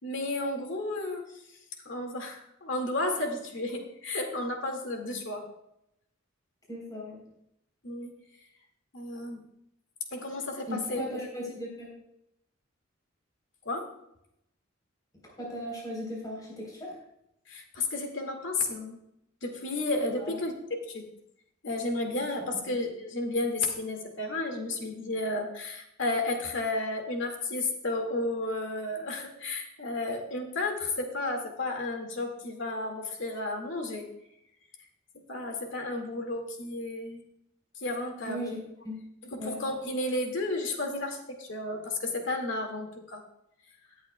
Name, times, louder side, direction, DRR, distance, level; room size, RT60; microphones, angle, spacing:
voice 1, 0.0-1.2 1.9-5.5 7.8-8.1 8.9-9.4 10.1-11.0 13.6-13.9 17.5-19.0 19.4-21.1 21.6-34.1 35.1-37.2 37.8-38.5 39.2-43.2, left 2 dB, 65° left, 3 dB, 2.1 m, -32 dB
voice 2, 6.7-7.2 10.7-11.9 15.4-17.0 20.2-20.4 22.6-22.7 38.2-39.0 39.4-39.6, equal, 20° left, -3 dB, 3.7 m, -37 dB
18.0 x 8.7 x 2.3 m, 0.80 s
head